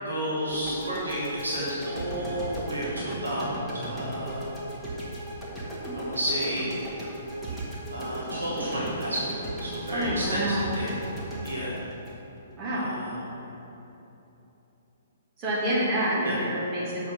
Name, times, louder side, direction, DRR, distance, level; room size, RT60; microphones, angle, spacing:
voice 1, 0.0-4.6 5.9-6.7 7.9-10.9 11.4-11.7 12.7-13.5 16.2-16.4, equal, 75° right, -7 dB, 1.5 m, -31 dB
sound 1, 0.5-12.7, right 1 dB, 5° left, 1.6 m, -37 dB
voice 2, 9.9-10.7 12.6-12.9 15.4-17.1, right 1 dB, 25° right, -7 dB, 1.8 m, -27 dB
7.3 x 4.9 x 5.7 m, 3.0 s
figure-of-eight pair, 120°, 0 cm